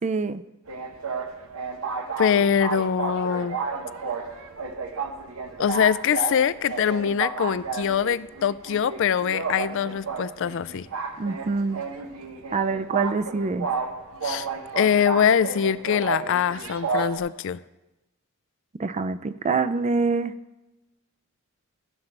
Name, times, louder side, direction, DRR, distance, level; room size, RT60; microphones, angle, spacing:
voice 1, 0.0-0.4 11.2-11.8 12.5-13.7 18.8-20.3, right 4 dB, 30° right, 13 dB, 0.4 m, -25 dB
sound 1, 0.7-17.2, right 4 dB, 80° right, 0.9 m, -32 dB
voice 2, 2.2-3.6 5.6-10.9 14.2-14.5 14.8-17.6, left 8 dB, 60° left, 17 dB, 0.4 m, -23 dB
15.0 x 7.3 x 3.3 m, 0.99 s
head